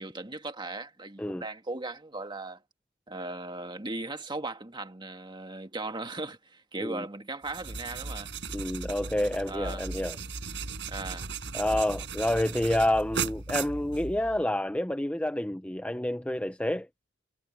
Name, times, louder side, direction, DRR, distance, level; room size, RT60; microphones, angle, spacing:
voice 1, 0.0-2.6 3.1-8.3 9.5-9.8 10.9-11.3, right 2 dB, 25° right, 1.7 m, -38 dB
sound 1, 7.4-14.4, right 4 dB, 65° right, 5.9 m, -37 dB
voice 2, 8.5-10.2 11.5-16.9, left 1 dB, 5° left, 0.6 m, -28 dB
head